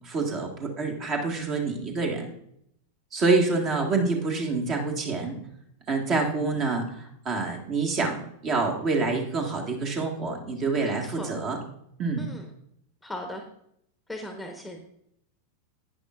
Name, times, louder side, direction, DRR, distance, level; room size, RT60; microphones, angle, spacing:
voice 1, 0.1-2.3 3.1-5.4 5.9-6.8 7.3-8.2 8.4-11.6 12.0-12.2, right 3 dB, 30° right, 1 dB, 1.8 m, -26 dB
voice 2, 10.7-11.3 12.2-12.5 13.0-13.4 14.1-14.8, left 1 dB, 5° left, 3 dB, 1.1 m, -38 dB
11.0 x 9.5 x 2.5 m, 0.73 s
figure-of-eight pair, 90°, 0 cm